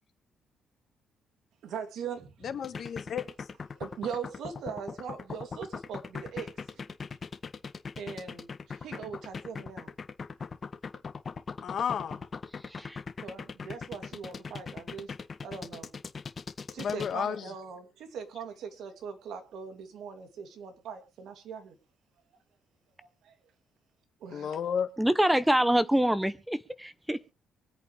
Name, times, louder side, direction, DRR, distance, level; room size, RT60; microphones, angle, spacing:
voice 1, 1.6-2.6 3.8-6.8 8.0-9.9 13.2-15.1 15.4-15.9 16.7-21.8 23.2-23.4 24.2-24.5, right 6 dB, 75° right, 2.7 m, -41 dB
voice 2, 2.4-3.2 11.6-12.2 16.8-17.4 24.3-24.9, left 8 dB, 60° left, 1.6 m, -32 dB
sound 1, 2.6-17.1, left 5 dB, 40° left, 1.6 m, -39 dB
voice 3, 25.0-27.3, right 1 dB, 5° right, 0.8 m, -26 dB
24.0 x 8.4 x 3.3 m
cardioid pair, 90°, 0 cm